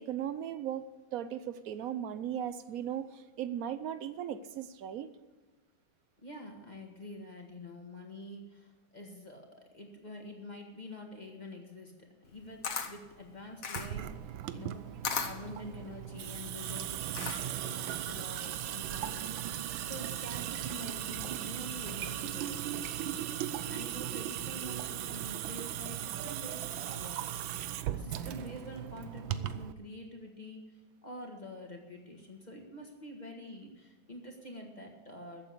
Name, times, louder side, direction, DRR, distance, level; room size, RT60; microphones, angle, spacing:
voice 1, 0.0-5.1, right 10 dB, 60° right, 1.0 m, -37 dB
voice 2, 6.2-9.5 9.7-14.1 14.5-14.8 15.2-27.2 27.9-35.5, left 1 dB, 25° left, 1.8 m, -47 dB
Camera, 12.2-17.7, left 6 dB, 50° left, 1.5 m, -38 dB
Water tap faucet / Sink (filling or washing) / Drip, 13.8-29.7, right 11 dB, 90° right, 1.5 m, -37 dB
14.0 x 7.8 x 8.4 m
omnidirectional pair, 2.1 m